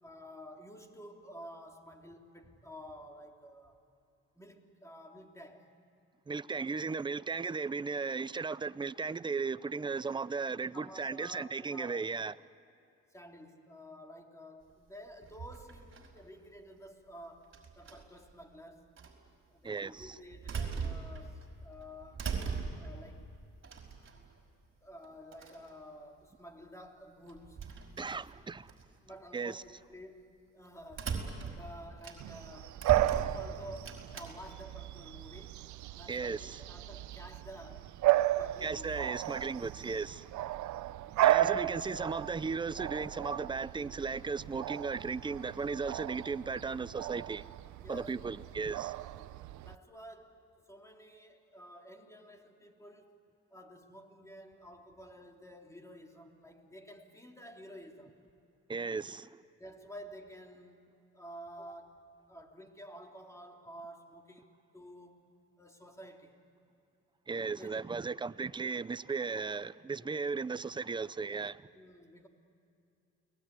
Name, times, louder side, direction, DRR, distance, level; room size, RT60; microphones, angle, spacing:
voice 1, 0.0-3.8 4.3-5.7 10.7-12.1 13.1-18.9 19.5-22.3 22.7-23.2 24.2-24.3 24.8-27.6 29.0-30.3 30.5-32.8 33.1-35.7 35.9-37.9 38.3-39.0 47.8-48.1 49.1-49.4 49.6-50.4 50.7-53.1 53.5-58.1 59.6-65.2 65.6-66.4 67.6-67.8 71.7-72.3, equal, 10° left, 3.3 m, -51 dB
voice 2, 6.3-12.4 19.6-20.2 28.0-28.7 29.3-29.6 36.1-36.6 38.6-40.3 41.2-47.5 47.9-48.9 58.7-59.4 67.3-71.7, right 4 dB, 15° right, 0.6 m, -36 dB
sound 1, 15.2-16.2 17.5-18.2 19.0-19.1 20.0-21.5 21.8-23.0 23.6-24.4 25.0-25.1 25.3-25.7 27.3-28.8 29.4-29.6 30.9-32.4 32.8-34.3, right 5 dB, 40° right, 5.2 m, -39 dB
Bark / Bird vocalization bird call bird song, 32.2-49.8, right 15 dB, 65° right, 0.7 m, -34 dB
29.5 x 20.0 x 9.7 m
cardioid pair, 90°, 31 cm